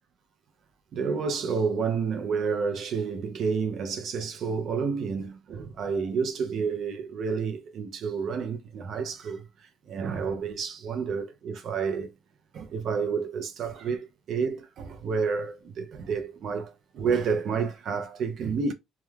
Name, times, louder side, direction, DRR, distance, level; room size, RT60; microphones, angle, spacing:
voice 1, 0.9-9.4 9.9-12.1 12.5-18.7, right 5 dB, 60° right, 0.5 m, -30 dB
2.2 x 2.2 x 3.1 m
cardioid pair, 100°, 0 cm